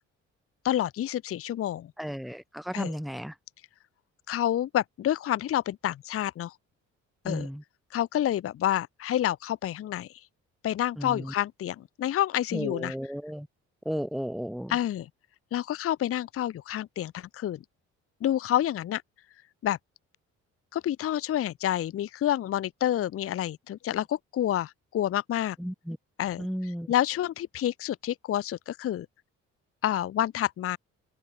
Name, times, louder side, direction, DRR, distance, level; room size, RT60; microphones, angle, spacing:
voice 1, 0.6-1.9 2.7-2.9 4.3-6.6 7.2-7.5 7.9-10.3 10.6-13.0 14.7-15.1 15.5-17.6 18.2-19.0 19.6-19.8 20.7-25.6 26.2-29.1 29.8-30.8, left 12 dB, 50° left, 0.6 m, -28 dB
voice 2, 2.0-3.3 7.2-7.6 11.0-11.3 12.5-13.5 13.8-14.7 25.6-26.0 26.4-26.9, equal, ahead, 1.0 m, -34 dB
cardioid pair, 90°, 30 cm